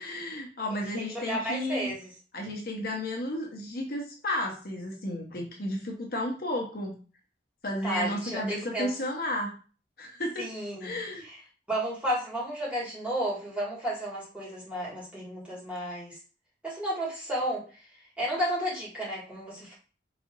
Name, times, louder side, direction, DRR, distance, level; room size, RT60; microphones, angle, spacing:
voice 1, 0.0-1.9 2.3-7.0 7.6-9.6 10.0-10.5 10.8-11.3, left 1 dB, 55° left, 0 dB, 1.0 m, -33 dB
voice 2, 1.1-2.1 7.8-8.9 10.4-10.9 11.2-11.4 11.7-16.2 16.6-17.8 18.2-19.8, right 1 dB, 5° right, -7 dB, 2.2 m, -32 dB
4.9 x 3.4 x 2.7 m, 0.36 s
head